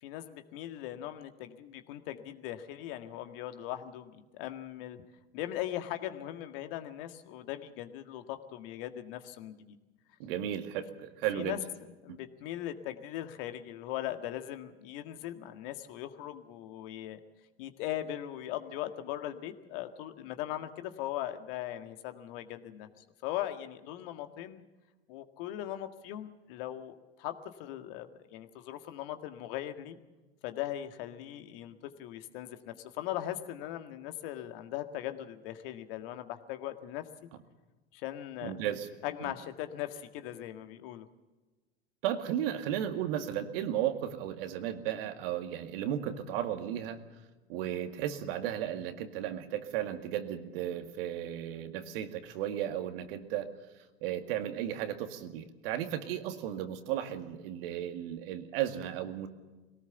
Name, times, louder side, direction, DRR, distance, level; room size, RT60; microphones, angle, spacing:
voice 1, 0.0-5.0 5.3-9.8 11.3-11.6 12.0-17.2 17.6-22.9 23.2-24.6 25.1-30.0 30.4-37.1 37.9-38.5 39.0-41.1, left 12 dB, 60° left, 8 dB, 1.8 m, -39 dB
voice 2, 10.2-11.6 12.1-12.2 38.4-38.9 39.2-39.3 42.0-47.0 47.5-53.5 54.0-59.3, right 11 dB, 65° right, 8 dB, 2.1 m, -34 dB
22.0 x 18.0 x 6.9 m, 1.2 s
hypercardioid pair, 85°, 32 cm